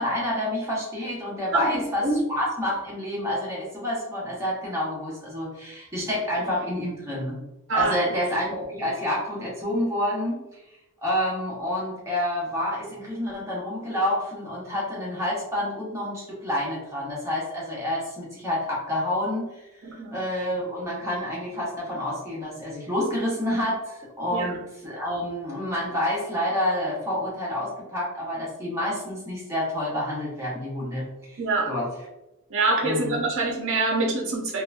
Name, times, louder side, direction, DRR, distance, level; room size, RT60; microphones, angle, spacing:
voice 1, 0.0-2.0 2.3-7.4 7.7-10.4 11.0-19.5 20.1-24.6 24.8-31.4 31.7-31.9 32.8-33.2, left 1 dB, 15° right, -6 dB, 0.9 m, -28 dB
voice 2, 1.5-2.2 7.7-7.9 19.8-20.2 24.3-24.5 31.4-31.7 32.5-34.6, right 3 dB, 60° right, -1 dB, 0.5 m, -25 dB
2.9 x 2.2 x 2.4 m, 0.94 s
head